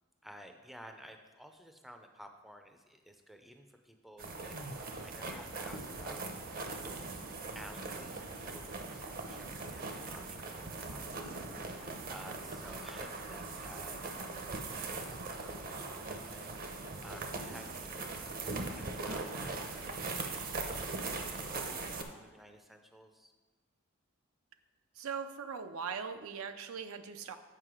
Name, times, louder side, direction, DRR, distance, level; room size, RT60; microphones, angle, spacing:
voice 1, 0.2-6.2 7.5-8.6 8.9-21.8 22.1-23.3, equal, ahead, 5 dB, 0.4 m, -54 dB
sound 1, 4.2-22.0, right 3 dB, 45° right, 0.7 m, -40 dB
voice 2, 25.0-27.4, right 6 dB, 85° right, 8 dB, 0.5 m, -40 dB
7.6 x 5.3 x 4.8 m, 1.3 s
head